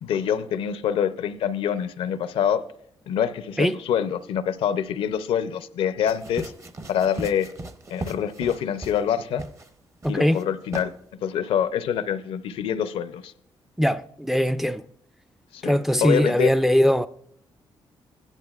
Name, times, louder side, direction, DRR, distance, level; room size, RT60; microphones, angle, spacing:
voice 1, 0.0-2.6 3.1-6.5 6.9-7.5 7.9-9.4 10.1-10.9 11.2-13.3 15.5-16.5, left 8 dB, 80° left, 0.5 m, -25 dB
sound 1, 6.1-9.1 9.4-9.7 10.0-10.4 10.7-10.9, right 2 dB, 30° right, 0.7 m, -37 dB
voice 2, 10.0-10.4 13.8-14.8 15.6-17.1, equal, 5° right, 0.3 m, -21 dB
16.0 x 10.5 x 2.4 m
cardioid pair, 90°, 9 cm